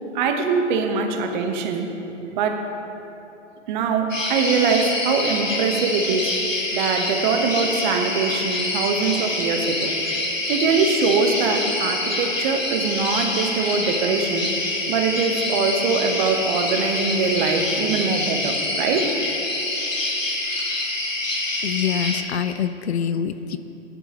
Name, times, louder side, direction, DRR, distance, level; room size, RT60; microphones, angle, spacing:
voice 1, 0.1-1.9 2.3-2.6 3.7-6.3 6.7-9.9 10.5-14.5 14.9-19.1, right 5 dB, 40° right, 5 dB, 1.2 m, -22 dB
sound 1, 4.1-22.2, left 2 dB, 90° left, 1.7 m, -26 dB
voice 2, 21.6-23.6, left 8 dB, 60° left, 11 dB, 0.6 m, -25 dB
17.0 x 10.5 x 3.0 m, 3.0 s
figure-of-eight pair, 115°, 37 cm